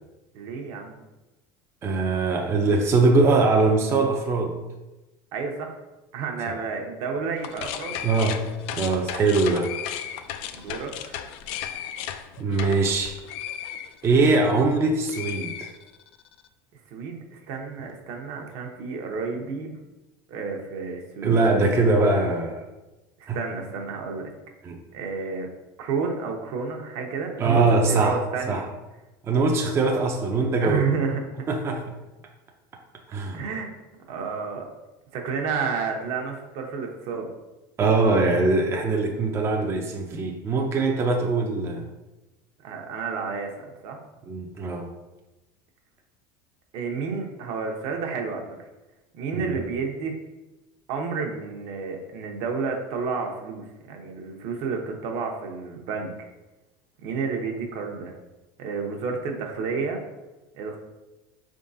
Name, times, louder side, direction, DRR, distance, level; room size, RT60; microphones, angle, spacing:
voice 1, 0.3-1.0 5.3-5.8 6.1-8.0 9.4-9.6 10.5-10.9 16.9-19.8 20.3-21.4 23.2-24.3 24.9-25.5 25.8-28.6 30.6-31.4 33.3-33.7 34.1-34.7 35.1-37.3 42.6-44.0 46.7-48.5 49.1-50.2 50.9-56.1 57.0-58.1 58.6-60.0 60.5-60.8, right 5 dB, 65° right, 2 dB, 0.8 m, -30 dB
voice 2, 1.8-4.6 8.0-8.4 8.7-9.8 12.4-13.2 14.0-15.7 21.2-22.7 23.3-23.4 24.6-24.8 27.4-28.2 28.5-28.7 29.2-30.9 31.5-31.8 33.1-33.4 37.8-41.9 44.3-44.9 49.3-49.6, right 3 dB, 25° right, 2 dB, 0.4 m, -22 dB
sound 1, 7.4-14.8 15.1-16.3, left 10 dB, 65° left, 0.4 m, -35 dB
4.6 x 3.6 x 2.6 m, 1.1 s
supercardioid pair, 130°, 11 cm